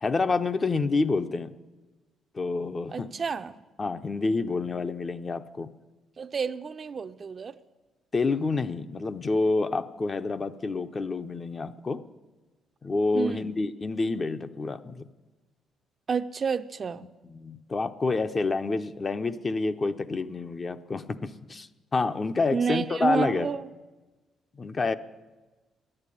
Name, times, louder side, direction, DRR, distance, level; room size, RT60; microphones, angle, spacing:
voice 1, 0.0-1.5 2.3-3.1 3.8-5.7 8.1-12.0 12.8-15.0 17.3-23.5 24.6-24.9, left 3 dB, 35° left, 0.6 m, -28 dB
voice 2, 2.9-3.6 6.2-7.6 13.1-13.5 16.1-17.1 22.5-23.7, right 6 dB, 40° right, 0.5 m, -30 dB
10.5 x 8.8 x 9.9 m
cardioid pair, 90°, 0 cm